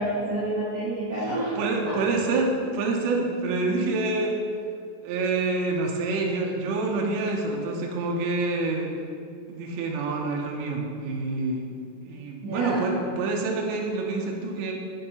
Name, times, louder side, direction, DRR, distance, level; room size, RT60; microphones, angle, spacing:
voice 1, 0.0-1.6 1.9-2.0 12.4-12.8, right 1 dB, 55° right, -12 dB, 2.1 m, -28 dB
voice 2, 1.6-4.4 5.0-9.0 9.5-11.7 12.0-14.7, right 3 dB, 80° right, 0 dB, 2.3 m, -27 dB
7.6 x 5.5 x 4.1 m, 2.3 s
omnidirectional pair, 5.2 m